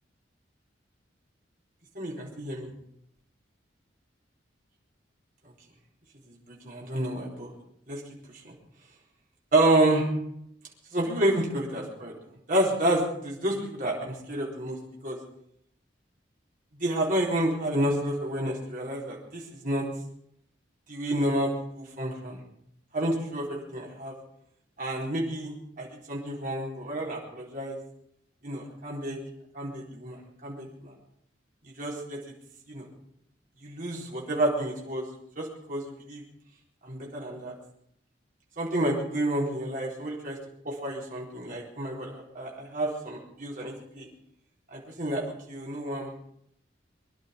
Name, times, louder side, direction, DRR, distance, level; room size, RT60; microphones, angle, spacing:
voice 1, 2.0-2.7 6.5-7.5 7.9-8.0 8.4-8.5 9.5-10.1 10.9-12.1 12.5-14.8 15.0-15.2 16.8-19.9 20.9-21.5 21.7-22.4 22.9-24.1 24.8-27.8 28.4-29.2 29.5-30.9 31.8-32.2 32.7-32.9 33.6-35.1 35.4-36.2 36.8-37.5 38.6-40.4 40.6-44.1 44.7-46.2, right 1 dB, 45° right, -3 dB, 4.2 m, -29 dB
23.0 x 11.5 x 5.3 m, 0.72 s
head